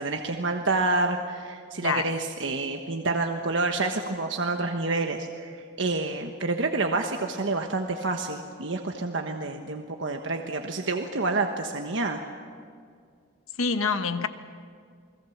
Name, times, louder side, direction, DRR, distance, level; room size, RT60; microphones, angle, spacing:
voice 1, 0.0-12.2, right 3 dB, 65° right, 3 dB, 1.3 m, -28 dB
voice 2, 1.8-2.1 13.6-14.3, left 4 dB, 90° left, 9 dB, 1.3 m, -26 dB
28.5 x 20.5 x 7.3 m, 2.2 s
head